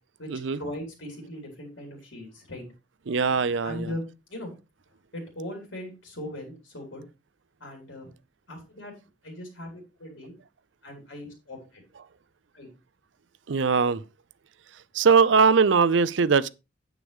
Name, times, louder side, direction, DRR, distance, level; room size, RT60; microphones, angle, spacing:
voice 1, 0.2-2.6 3.6-4.5 5.1-7.0 7.6-8.1 8.5-8.9 9.2-10.3 10.8-11.8 12.5-12.7, left 1 dB, 70° left, 4.2 m, -39 dB
voice 2, 3.1-3.9 13.5-14.0 14.9-16.5, right 5 dB, 70° right, 0.5 m, -21 dB
9.5 x 8.7 x 3.5 m
head